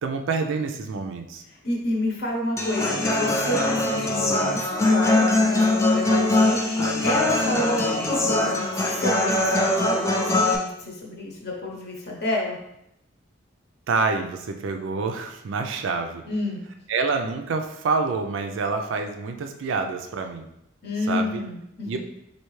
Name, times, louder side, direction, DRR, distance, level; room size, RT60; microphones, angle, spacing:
voice 1, 0.0-1.4 13.9-16.2 16.9-20.5 21.1-21.4 21.9-22.0, right 4 dB, 65° right, 5 dB, 0.4 m, -27 dB
voice 2, 1.5-12.6 16.3-16.6 20.8-22.0, left 1 dB, 50° left, -1 dB, 0.8 m, -29 dB
Human voice / Acoustic guitar, 2.6-10.6, left 2 dB, 15° left, 0.3 m, -22 dB
4.4 x 2.7 x 3.1 m, 0.79 s
head